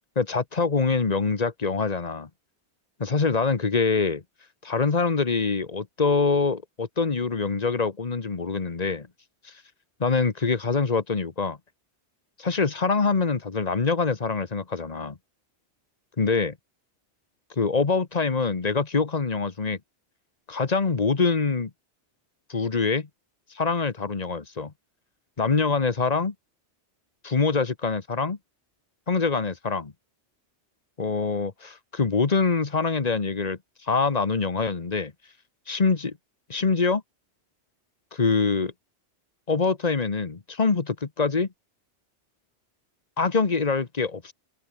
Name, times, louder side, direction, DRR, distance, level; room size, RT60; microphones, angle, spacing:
voice 1, 0.2-2.3 3.0-4.2 4.6-9.1 10.0-11.6 12.4-15.2 16.2-16.5 17.6-19.8 20.5-21.7 22.5-23.1 23.5-24.7 25.4-26.3 27.2-28.4 29.1-29.9 31.0-33.6 33.9-35.1 35.7-36.2 36.5-37.0 38.1-38.7 39.5-41.5 43.2-44.3, left 4 dB, 35° left, 1.3 m, -24 dB
omnidirectional pair, 1.2 m